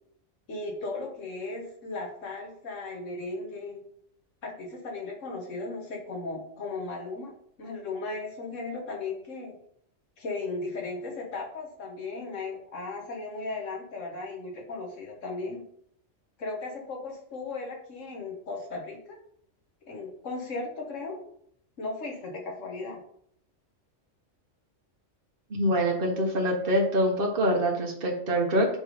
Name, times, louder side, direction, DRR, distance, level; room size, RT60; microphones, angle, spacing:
voice 1, 0.5-3.8 4.4-9.6 10.2-15.6 16.4-19.2 19.9-21.2 21.8-23.0, left 3 dB, 85° left, 1 dB, 1.7 m, -36 dB
voice 2, 25.5-28.7, equal, 50° right, 0 dB, 1.5 m, -25 dB
7.2 x 3.5 x 5.1 m, 0.67 s
omnidirectional pair, 1.3 m